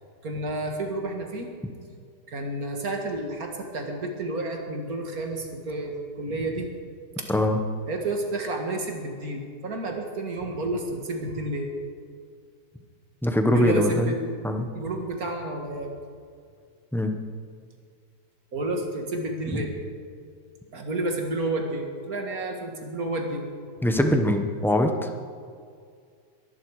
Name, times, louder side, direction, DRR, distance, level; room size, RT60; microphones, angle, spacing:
voice 1, 0.2-1.5 2.3-6.7 7.3-7.4 7.9-11.7 13.5-14.2 14.7-15.9 18.5-19.7 20.7-23.5, right 2 dB, 60° right, 2 dB, 2.3 m, -30 dB
voice 2, 13.2-14.1 14.4-14.7 16.9-17.1 19.5-19.6 23.8-25.1, left 1 dB, ahead, 5 dB, 0.7 m, -22 dB
22.0 x 11.0 x 4.9 m, 2.2 s
omnidirectional pair, 1.8 m